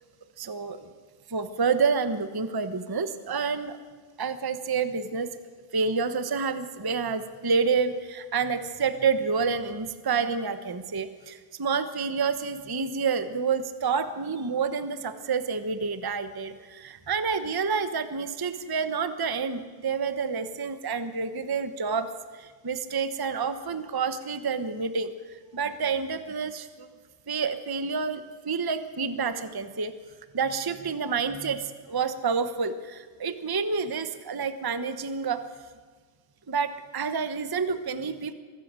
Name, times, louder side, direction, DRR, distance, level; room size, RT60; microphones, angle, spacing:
voice 1, 0.4-0.9 1.3-3.8 4.2-5.3 5.7-22.1 22.3-26.9 27.3-29.9 30.3-35.4 36.5-38.3, right 5 dB, 25° right, 10 dB, 0.4 m, -29 dB
24.0 x 14.5 x 9.0 m, 1.5 s
omnidirectional pair, 2.4 m